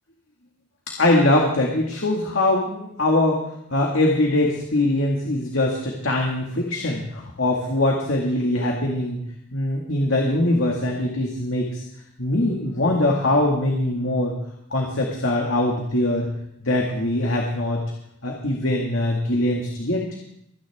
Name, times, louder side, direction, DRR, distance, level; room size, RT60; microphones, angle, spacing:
voice 1, 1.0-3.4 3.7-9.2 9.5-11.8 12.2-14.3 14.7-16.3 16.6-17.8 18.2-20.1, left 1 dB, 75° left, -1 dB, 2.1 m, -22 dB
25.5 x 10.0 x 3.6 m, 0.74 s
head